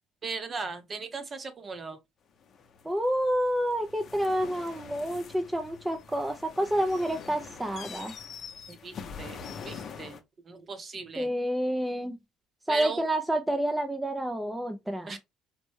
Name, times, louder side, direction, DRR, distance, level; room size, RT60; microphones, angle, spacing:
voice 1, 0.2-2.0 8.7-9.4 9.6-10.2 10.5-11.3 12.7-13.0 15.1-15.2, right 4 dB, 30° right, 0.8 m, -37 dB
sound 1, 2.4-10.2, left 6 dB, 45° left, 0.6 m, -44 dB
voice 2, 2.8-8.1 11.2-12.2 12.7-15.2, equal, 5° right, 0.4 m, -29 dB
4.2 x 2.2 x 3.0 m
cardioid pair, 115°, 0 cm